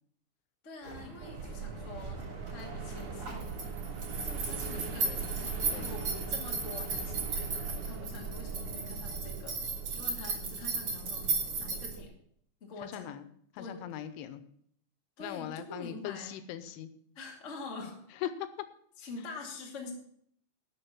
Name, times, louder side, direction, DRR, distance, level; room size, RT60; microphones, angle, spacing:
voice 1, 0.6-2.2 2.5-3.5 4.2-5.3 5.7-9.6 9.9-12.1 12.6-13.1 13.5-13.8 15.2-16.4 17.1-18.0 19.0-19.9, left 3 dB, 30° left, 0 dB, 1.3 m, -45 dB
sound 1, 0.8-12.0, right 4 dB, 30° right, 2.7 m, -37 dB
sound 2, 1.2-12.0, right 5 dB, 65° right, 2.0 m, -40 dB
voice 2, 12.8-13.3 13.5-14.4 15.2-16.9 18.2-18.5, left 11 dB, 90° left, 12 dB, 3.2 m, -39 dB
12.5 x 6.5 x 7.3 m, 0.65 s
omnidirectional pair, 5.5 m